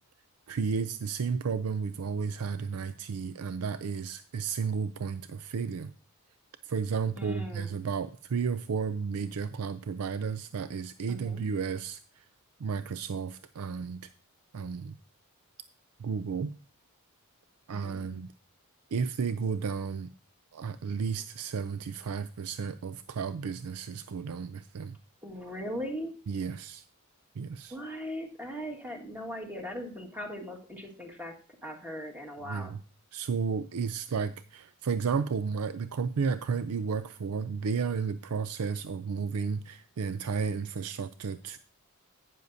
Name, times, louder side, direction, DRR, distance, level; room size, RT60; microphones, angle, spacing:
voice 1, 0.5-5.9 6.6-12.2 12.6-14.0 14.5-14.9 16.0-16.5 17.7-18.3 18.9-20.1 20.5-25.0 26.3-26.8 27.4-27.8 32.4-32.8 33.1-41.6, right 5 dB, 75° right, 13 dB, 0.4 m, -33 dB
voice 2, 7.2-7.7 11.1-11.4 17.7-18.0 25.2-26.1 27.7-31.3 31.6-32.7, equal, 10° right, 1 dB, 1.7 m, -39 dB
11.5 x 9.3 x 2.7 m, 0.39 s
head